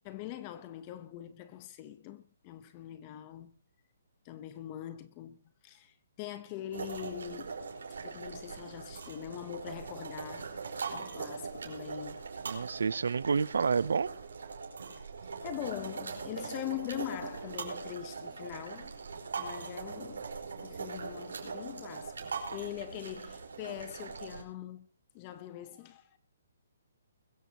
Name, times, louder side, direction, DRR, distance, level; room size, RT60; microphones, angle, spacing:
voice 1, 0.0-3.5 4.2-7.5 8.0-10.5 10.9-12.2 15.4-18.9 19.4-24.9 25.1-26.1, left 13 dB, 20° left, 1.0 m, -43 dB
sound 1, 6.7-24.4, right 5 dB, 90° right, 4.6 m, -41 dB
voice 2, 12.5-14.1, right 5 dB, 75° right, 0.6 m, -29 dB
21.5 x 15.0 x 3.0 m
hypercardioid pair, 180°, 0 cm